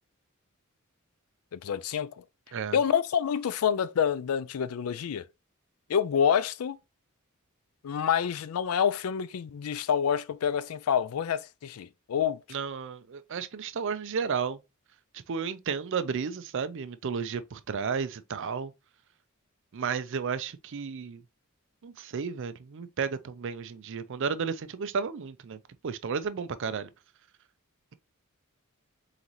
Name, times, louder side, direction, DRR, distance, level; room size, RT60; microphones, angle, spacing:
voice 1, 1.5-2.2 2.7-5.3 5.9-6.8 7.8-12.4, left 8 dB, 90° left, 0.4 m, -27 dB
voice 2, 12.5-14.6 15.3-18.7 19.7-21.2 21.8-26.9, right 6 dB, 60° right, 0.5 m, -33 dB
4.0 x 3.9 x 3.0 m
head